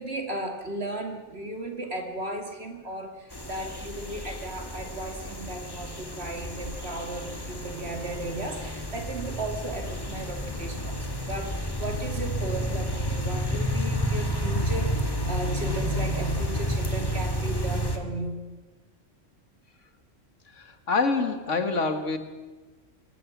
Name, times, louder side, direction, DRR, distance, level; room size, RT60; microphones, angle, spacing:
voice 1, 0.0-18.4, right 2 dB, 55° right, 4 dB, 3.0 m, -35 dB
sound 1, 3.3-18.0, equal, 20° left, 1.8 m, -30 dB
voice 2, 20.5-22.2, left 4 dB, 80° left, 8 dB, 2.1 m, -26 dB
23.0 x 19.0 x 7.3 m, 1.2 s
omnidirectional pair, 1.3 m